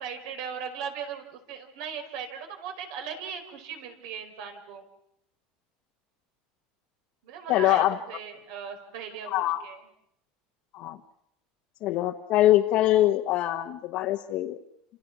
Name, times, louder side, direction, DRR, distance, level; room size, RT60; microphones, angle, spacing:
voice 1, 0.0-4.8 7.2-9.8, right 7 dB, 70° right, 5 dB, 5.0 m, -38 dB
voice 2, 7.5-8.0 9.3-9.6 10.7-11.0 11.8-14.6, left 14 dB, 45° left, 2 dB, 1.2 m, -23 dB
29.5 x 27.0 x 6.2 m, 0.75 s
cardioid pair, 165°, 3 cm